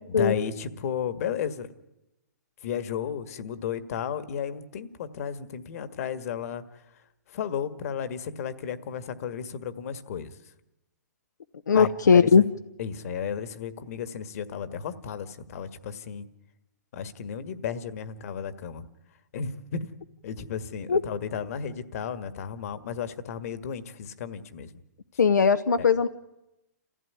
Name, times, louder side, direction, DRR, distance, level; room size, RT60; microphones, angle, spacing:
voice 1, 0.2-1.7 2.6-6.6 7.3-10.3 11.7-12.5 12.8-16.2 16.9-18.9 19.3-19.9 20.2-24.7, left 7 dB, 55° left, 13 dB, 1.7 m, -33 dB
voice 2, 11.7-12.4 20.9-21.0 25.2-26.1, left 5 dB, 90° left, 8 dB, 0.9 m, -19 dB
28.0 x 15.5 x 9.6 m, 0.95 s
hypercardioid pair, 135°, 9 cm